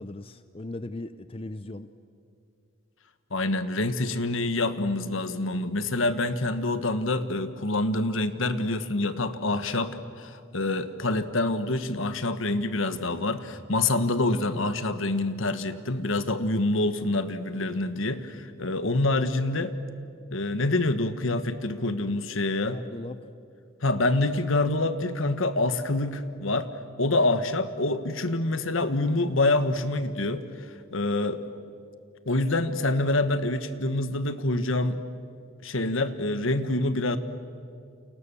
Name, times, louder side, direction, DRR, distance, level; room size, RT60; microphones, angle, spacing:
voice 1, 0.0-1.9 22.7-23.3, left 2 dB, 25° left, 12 dB, 0.6 m, -38 dB
voice 2, 3.3-19.7 20.3-22.8 23.8-26.7 27.0-31.4 32.2-35.0 35.6-37.2, left 2 dB, 75° left, 11 dB, 1.4 m, -26 dB
29.5 x 28.5 x 7.0 m, 2.4 s
head